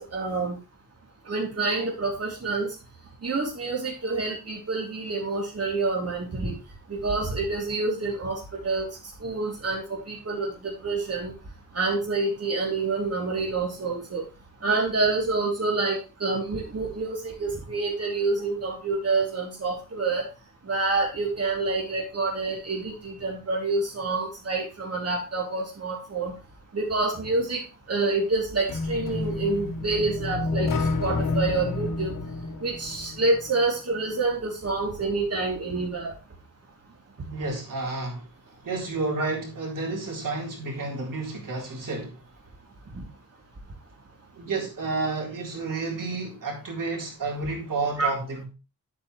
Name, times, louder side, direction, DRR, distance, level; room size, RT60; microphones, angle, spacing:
voice 1, 0.1-0.6 1.3-2.7 3.2-6.5 6.9-8.9 9.2-11.3 11.7-14.2 14.6-20.3 20.7-26.3 26.7-27.6 27.9-32.1 32.6-36.1 48.0-48.1, right 3 dB, 50° right, 3.1 m, -27 dB
sound 1, 28.7-33.6, left 3 dB, 85° left, 1.4 m, -29 dB
voice 2, 37.3-38.3 38.6-42.2 44.4-48.4, right 3 dB, 85° right, 3.8 m, -30 dB
10.0 x 8.5 x 3.2 m
wide cardioid pair, 95°, 32 cm